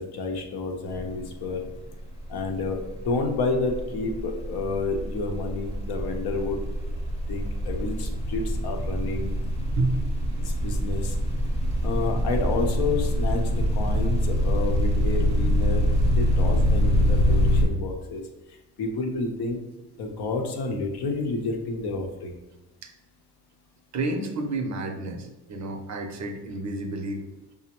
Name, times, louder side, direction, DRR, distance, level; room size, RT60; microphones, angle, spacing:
voice 1, 0.0-1.6 2.3-6.6 7.3-9.3 10.4-11.2 11.8-15.9 16.2-18.2 18.8-19.6 20.0-22.3, left 3 dB, 65° left, 3 dB, 0.7 m, -30 dB
sound 1, 0.9-1.2 1.5-17.7, equal, 15° left, 0.8 m, -25 dB
voice 2, 23.9-27.2, right 2 dB, 45° right, 5 dB, 0.6 m, -30 dB
5.2 x 2.0 x 2.9 m, 0.99 s
supercardioid pair, 70°, 42 cm